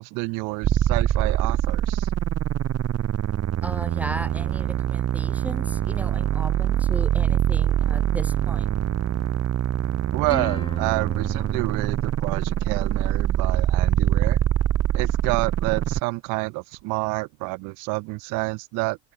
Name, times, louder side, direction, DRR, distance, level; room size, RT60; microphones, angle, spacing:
voice 1, 0.0-2.1 10.1-14.4 14.9-19.0, right 29 dB, 80° right, 1.1 m, -29 dB
Helicopter Saw, 0.6-16.0, right 11 dB, 55° right, 1.0 m, -24 dB
voice 2, 3.6-8.7, right 1 dB, 5° right, 2.4 m, -36 dB
Plucked string instrument, 10.3-13.0, left 3 dB, 15° left, 1.3 m, -39 dB
hypercardioid pair, 45°, 31 cm